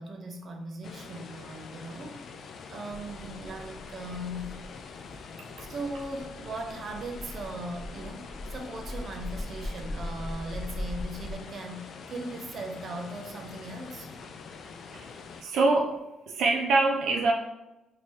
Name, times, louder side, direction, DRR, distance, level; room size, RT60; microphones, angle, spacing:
voice 1, 0.0-4.6 5.7-14.1, right 1 dB, 50° right, 3 dB, 0.7 m, -39 dB
sound 1, 0.8-15.4, left 5 dB, 65° left, 0.4 m, -45 dB
sound 2, 2.9-11.3, left 1 dB, 25° left, 0.8 m, -40 dB
voice 2, 15.4-17.3, right 3 dB, 85° right, 1 dB, 0.4 m, -25 dB
4.4 x 3.0 x 2.8 m, 0.96 s
cardioid pair, 90°, 0 cm